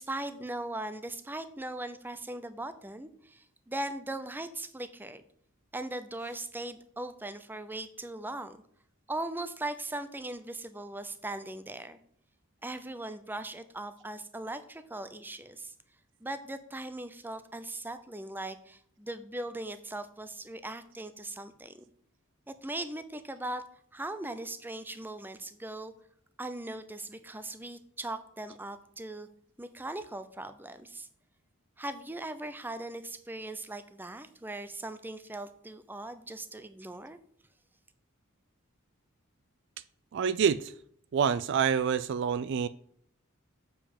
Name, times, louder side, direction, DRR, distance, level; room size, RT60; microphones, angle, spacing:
voice 1, 0.0-5.2 5.7-8.6 9.1-12.0 12.6-15.7 16.2-21.8 22.5-23.6 23.9-25.9 26.4-29.3 29.6-31.1 31.8-37.2, right 2 dB, 10° right, 0.6 m, -39 dB
voice 2, 40.1-40.7 41.1-42.7, right 7 dB, 55° right, 0.3 m, -27 dB
7.0 x 5.2 x 7.2 m
head